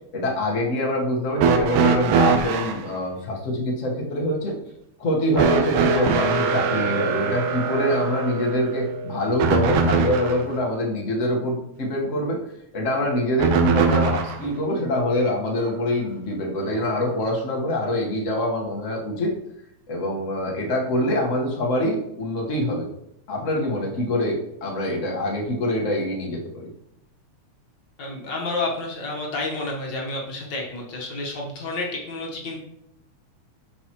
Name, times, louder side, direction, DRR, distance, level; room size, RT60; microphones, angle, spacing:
voice 1, 0.1-4.6 5.0-12.4 12.7-19.3 19.9-22.9 23.3-26.7, left 1 dB, 85° left, -2 dB, 0.6 m, -25 dB
sound 1, 1.4-2.8 5.4-10.5 13.4-14.5 15.7-15.8 16.8-16.9, right 5 dB, 80° right, 2.3 m, -22 dB
voice 2, 28.0-32.6, left 2 dB, 55° left, -1 dB, 1.3 m, -30 dB
12.0 x 4.7 x 3.0 m, 0.78 s
omnidirectional pair, 3.6 m